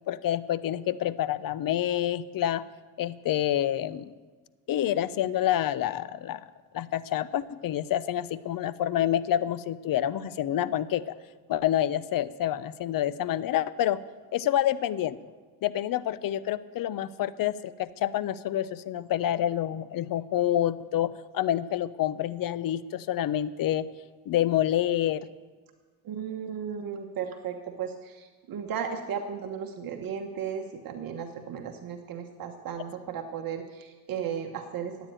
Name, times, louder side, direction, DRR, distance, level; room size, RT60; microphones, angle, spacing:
voice 1, 0.1-2.6 3.0-4.1 4.7-6.5 6.7-11.2 11.5-14.0 14.3-15.2 15.6-23.9 24.3-25.3, left 12 dB, 50° left, 17 dB, 0.7 m, -28 dB
voice 2, 26.0-34.9, right 7 dB, 50° right, 4 dB, 1.3 m, -35 dB
14.5 x 9.4 x 9.1 m, 1.4 s
cardioid pair, 115°, 44 cm